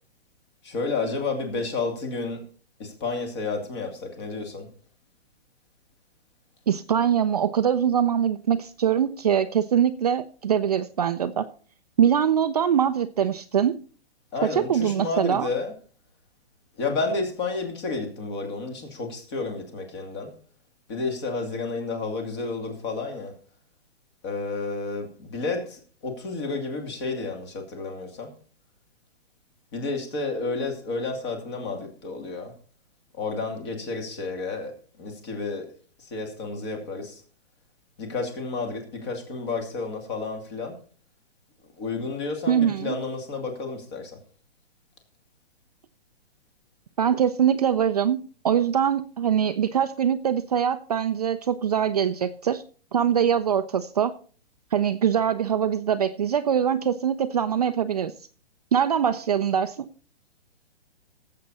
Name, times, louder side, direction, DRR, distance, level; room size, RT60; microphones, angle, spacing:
voice 1, 0.6-2.5 2.8-4.7 14.3-15.8 16.8-20.3 20.9-23.4 24.2-28.3 29.7-32.5 33.1-35.7 36.0-37.2 38.0-40.8 41.8-44.2, left 3 dB, 25° left, 2.6 m, -31 dB
voice 2, 6.7-11.5 12.0-13.8 14.4-15.5 42.5-43.0 47.0-48.2 48.4-52.6 52.9-54.1 54.7-58.1 58.7-59.8, right 8 dB, 40° right, 0.5 m, -23 dB
17.5 x 7.7 x 4.2 m
hypercardioid pair, 170°, 32 cm